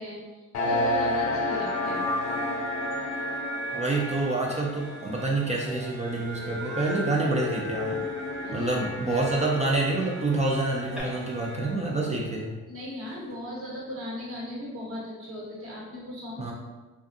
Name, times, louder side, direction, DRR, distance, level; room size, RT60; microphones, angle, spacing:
voice 1, 0.0-2.0 8.4-8.7 9.1-9.2 12.7-16.5, left 1 dB, 50° right, -6 dB, 1.1 m, -37 dB
sound 1, 0.5-12.0, left 1 dB, 65° left, 0.7 m, -32 dB
voice 2, 3.7-7.9 8.5-12.5 16.4-16.5, right 2 dB, 25° right, -2 dB, 0.4 m, -27 dB
Human voice, 5.5-5.6 5.9-6.1 6.5-11.0, equal, 5° right, 0.8 m, -45 dB
2.5 x 2.3 x 2.5 m, 1.2 s
cardioid pair, 90°, 30 cm